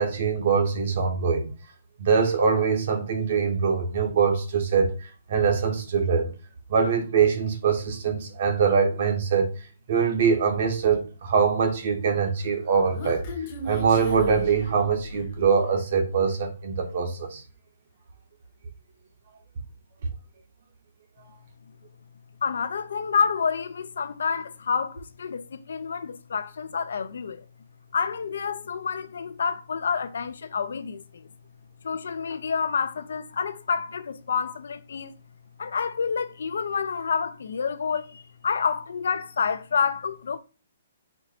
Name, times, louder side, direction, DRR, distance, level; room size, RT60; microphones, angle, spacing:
voice 1, 0.0-1.5 2.0-5.0 5.3-6.3 6.7-9.5 9.9-13.2 13.6-17.4, right 6 dB, 40° right, 1.0 m, -23 dB
Human voice, 12.4-15.4, equal, 25° left, 1.0 m, -36 dB
voice 2, 22.4-27.4 27.9-31.3 31.8-35.1 35.6-40.4, left 6 dB, 70° left, 0.5 m, -28 dB
4.5 x 2.6 x 4.1 m
hypercardioid pair, 175°, 0 cm